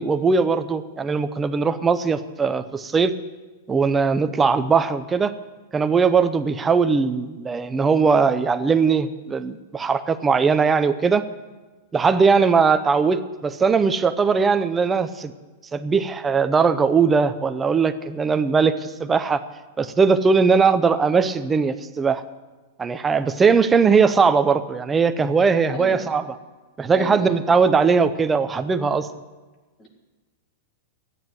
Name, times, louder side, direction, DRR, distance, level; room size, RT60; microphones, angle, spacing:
voice 1, 0.0-3.1 3.7-5.3 5.7-11.2 11.9-15.3 15.7-19.4 19.8-22.2 22.8-26.2 26.8-29.1, right 5 dB, 10° right, 11 dB, 0.5 m, -19 dB
voice 2, 25.7-26.1 26.9-27.3 29.8-29.9, right 1 dB, 20° left, 1 dB, 1.8 m, -32 dB
13.5 x 9.4 x 7.7 m, 1.3 s
supercardioid pair, 160°, 0 cm